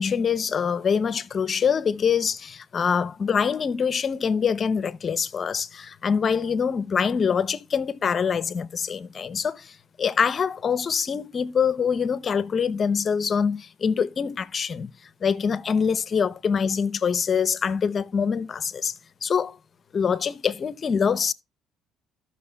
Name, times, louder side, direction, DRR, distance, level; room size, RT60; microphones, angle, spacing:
voice 1, 0.0-14.9 15.2-18.9 19.2-19.6 19.9-21.3, left 6 dB, 40° left, 0.6 m, -24 dB
14.5 x 6.3 x 2.2 m
supercardioid pair, 90°, 0 cm